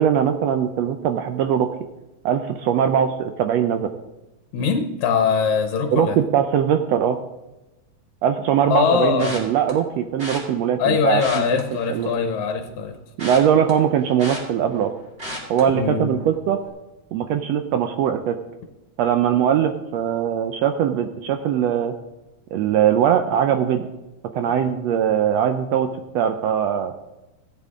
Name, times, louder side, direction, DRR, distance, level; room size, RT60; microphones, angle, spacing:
voice 1, 0.0-1.7 2.2-3.9 5.9-7.2 8.2-11.2 11.9-12.1 13.2-14.9 15.5-16.6 17.1-18.4 19.0-21.9 22.5-23.9 24.3-25.9 26.1-26.9, right 9 dB, 80° right, 7 dB, 1.5 m, -21 dB
voice 2, 4.5-6.2 8.7-9.4 10.8-13.0 15.7-16.2 24.6-24.7, left 6 dB, 70° left, 5 dB, 2.1 m, -22 dB
sound 1, 9.2-9.7 10.2-10.4 11.1-12.3 12.7-14.9 15.2-15.6 16.1-16.3 16.6-16.7, equal, 20° right, 2.3 m, -34 dB
16.0 x 8.9 x 3.6 m, 1.0 s
omnidirectional pair, 3.6 m